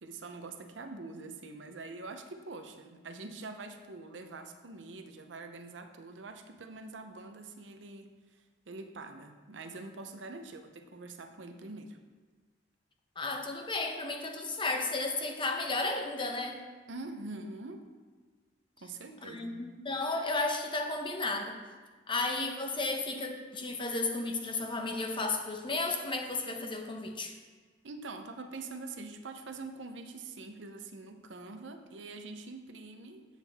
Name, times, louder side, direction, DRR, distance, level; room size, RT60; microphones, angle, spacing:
voice 1, 0.0-12.0 16.9-17.9 18.8-19.7 27.8-33.3, right 3 dB, 85° right, 7 dB, 0.8 m, -45 dB
voice 2, 13.2-16.6 19.2-21.6 22.1-27.3, left 3 dB, 25° left, 4 dB, 0.9 m, -33 dB
8.7 x 7.4 x 3.6 m, 1.4 s
head